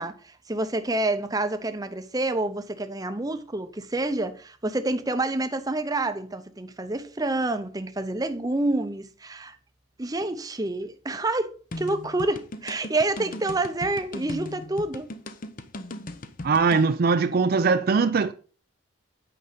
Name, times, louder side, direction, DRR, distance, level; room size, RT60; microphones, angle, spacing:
voice 1, 0.0-9.6 10.0-15.1, right 2 dB, 20° right, 0.7 m, -28 dB
sound 1, 11.7-16.9, left 1 dB, 40° left, 0.7 m, -38 dB
voice 2, 16.4-18.3, right 4 dB, 50° right, 0.4 m, -21 dB
8.8 x 5.4 x 5.1 m
head